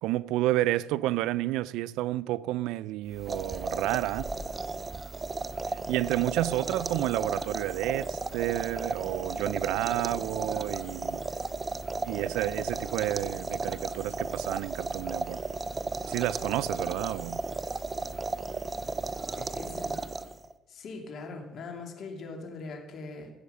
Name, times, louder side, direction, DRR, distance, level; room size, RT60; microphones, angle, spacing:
voice 1, 0.0-4.3 5.7-11.2 11.9-15.4 16.1-17.4, right 15 dB, 85° right, 0.4 m, -30 dB
sound 1, 3.1-20.5, right 3 dB, 20° right, 0.6 m, -34 dB
voice 2, 19.3-20.0 20.7-23.3, left 3 dB, 55° left, 3.0 m, -41 dB
15.5 x 8.1 x 6.9 m
cardioid pair, 120°, 0 cm